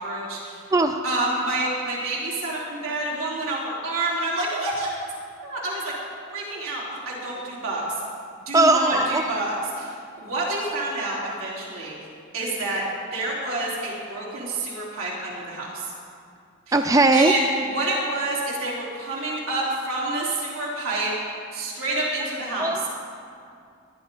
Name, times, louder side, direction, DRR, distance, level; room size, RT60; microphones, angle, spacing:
voice 1, 0.0-0.6 1.0-4.9 5.4-5.9 6.3-8.0 8.5-11.9 12.3-12.8 13.1-15.9 16.7-21.1 21.5-22.9, right 2 dB, 80° right, -6 dB, 3.8 m, -28 dB
voice 2, 8.5-9.2 16.7-17.3 22.6-22.9, right 2 dB, 15° right, 6 dB, 0.3 m, -19 dB
19.5 x 10.5 x 3.9 m, 2.4 s
head